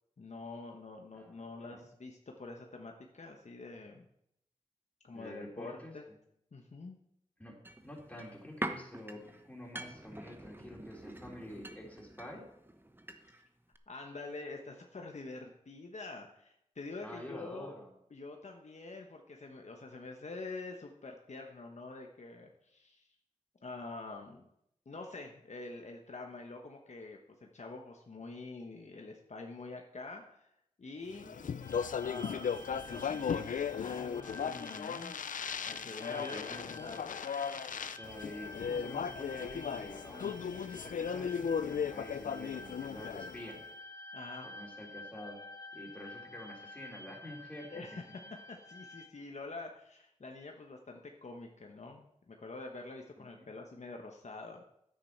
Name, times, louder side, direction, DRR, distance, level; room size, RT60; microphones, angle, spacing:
voice 1, 0.2-4.1 5.0-6.0 6.5-7.0 13.9-17.7 18.1-23.1 23.6-24.4 24.9-30.5 30.8-31.3 32.0-35.1 35.7-37.3 44.1-44.5 47.6-48.0 48.5-54.6, left 3 dB, 60° left, 2 dB, 1.1 m, -46 dB
voice 2, 1.1-1.8 5.1-5.9 7.4-7.5 7.8-12.5 17.0-17.9 31.2-31.5 36.1-36.7 37.8-43.6 44.4-45.4 45.7-47.7 53.2-53.5, left 1 dB, 10° left, -2 dB, 3.6 m, -48 dB
sound 1, 7.6-13.5 13.7-13.8, right 1 dB, 15° right, 1.0 m, -45 dB
Speech, 31.2-43.6, left 7 dB, 85° left, 0.4 m, -37 dB
sound 2, 31.6-49.1, left 1 dB, 25° left, 1.4 m, -50 dB
9.8 x 8.9 x 4.5 m, 0.76 s
cardioid pair, 45°, 13 cm